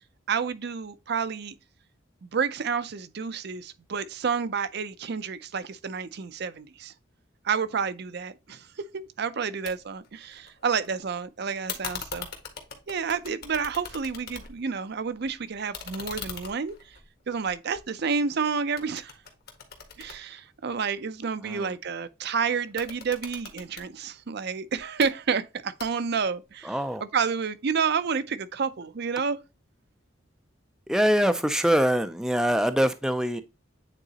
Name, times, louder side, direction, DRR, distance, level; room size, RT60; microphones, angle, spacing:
voice 1, 0.3-1.5 2.2-6.9 7.4-8.7 8.9-12.3 12.9-16.7 17.3-19.1 20.0-26.7 27.1-29.4, right 6 dB, 55° right, 0.5 m, -29 dB
sound 1, 9.7-9.8 10.0-10.9 11.7-14.7 15.1-18.3 18.8-21.0 22.6-23.9 24.8-25.1 25.8-26.3, left 6 dB, 50° left, 1.5 m, -41 dB
voice 2, 21.4-21.7 26.6-27.0 30.9-33.4, equal, 5° right, 0.4 m, -24 dB
9.0 x 3.9 x 2.8 m
head